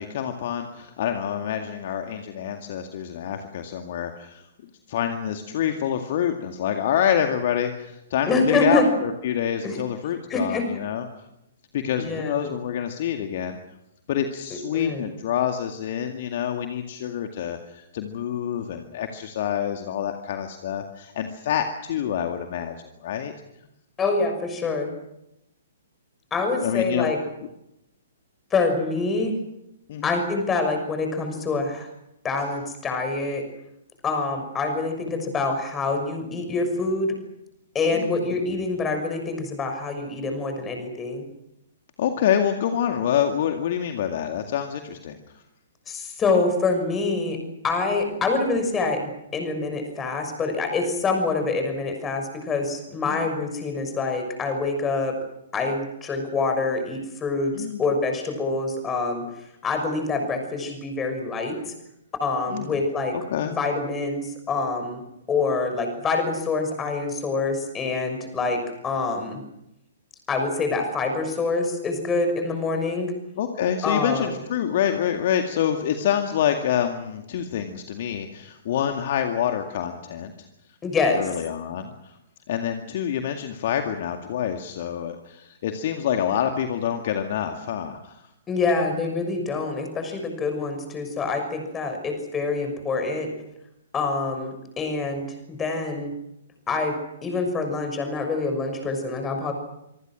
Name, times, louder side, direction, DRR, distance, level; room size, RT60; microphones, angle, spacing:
voice 1, 0.0-4.4 4.9-11.1 11.7-13.6 14.1-23.3 26.6-27.1 29.9-30.1 37.9-38.2 38.5-38.6 42.0-45.2 53.0-53.3 57.5-57.8 62.5-62.7 63.3-63.6 73.4-80.5 81.1-82.2 82.5-88.3, left 9 dB, 45° left, 5 dB, 2.1 m, -27 dB
voice 2, 8.3-8.9 9.6-9.8 10.3-10.6 12.0-12.5 14.5-15.0 24.0-24.9 26.3-27.2 28.5-29.4 30.0-31.9 32.2-33.4 34.0-37.2 37.7-41.2 45.9-47.4 47.6-55.2 55.5-59.2 59.6-61.7 62.2-63.2 63.6-65.0 65.3-69.4 70.3-73.1 73.8-74.4 80.8-81.3 88.5-93.3 93.9-96.1 96.7-97.0 97.2-99.5, left 3 dB, 15° left, 5 dB, 6.3 m, -26 dB
26.0 x 24.5 x 6.4 m, 0.85 s
figure-of-eight pair, 120°, 0 cm